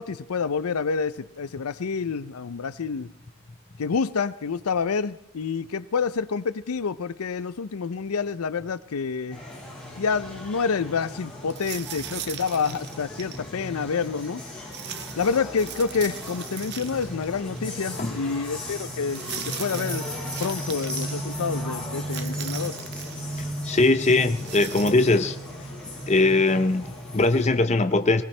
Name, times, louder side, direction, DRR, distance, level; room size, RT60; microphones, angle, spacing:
voice 1, 0.0-3.1 3.8-9.4 10.0-14.4 15.2-19.2 19.6-20.1 20.4-22.7, left 5 dB, 85° left, 0.5 m, -28 dB
sound 1, 9.3-27.5, equal, 5° left, 5.6 m, -36 dB
sound 2, 11.5-13.4 14.7-17.3 17.6-17.7 19.1-21.1 22.0-23.3 24.2-25.2, right 10 dB, 50° right, 0.8 m, -39 dB
voice 2, 23.7-25.4 26.1-28.2, left 2 dB, 30° left, 0.6 m, -21 dB
19.0 x 19.0 x 3.3 m
head